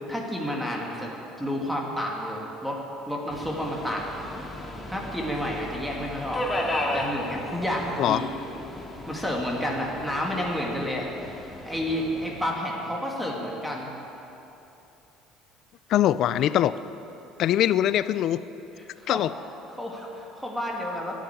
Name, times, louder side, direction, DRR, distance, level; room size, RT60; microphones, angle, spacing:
voice 1, 0.1-1.1 1.4-2.8 3.1-4.4 4.9-6.4 6.9-8.3 9.1-13.9 19.0-19.2 19.8-21.2, equal, ahead, -2 dB, 2.3 m, -30 dB
Subway metro underground, 3.3-12.5, left 1 dB, 15° left, 2.1 m, -35 dB
voice 2, 15.9-16.7 17.4-18.4 19.1-19.3, left 12 dB, 55° left, 15 dB, 0.5 m, -22 dB
13.0 x 10.5 x 9.0 m, 2.9 s
cardioid pair, 115°, 0 cm